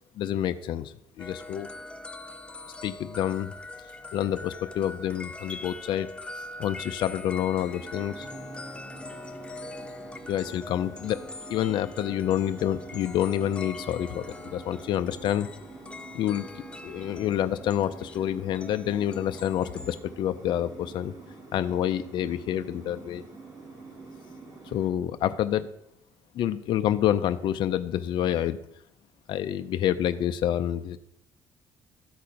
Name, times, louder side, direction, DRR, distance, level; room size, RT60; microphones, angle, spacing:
voice 1, 0.2-1.7 2.8-3.5 4.1-6.1 6.4-8.3 10.3-11.2 11.5-15.5 16.1-21.1 21.5-23.2 24.6-25.7 26.3-28.6 29.3-31.0, left 11 dB, 60° left, 10 dB, 0.5 m, -28 dB
sound 1, 1.2-20.0, left 2 dB, 10° left, 0.6 m, -43 dB
sound 2, 7.6-24.9, right 3 dB, 35° right, 2.6 m, -47 dB
13.0 x 4.3 x 5.1 m, 0.77 s
cardioid pair, 145°, 9 cm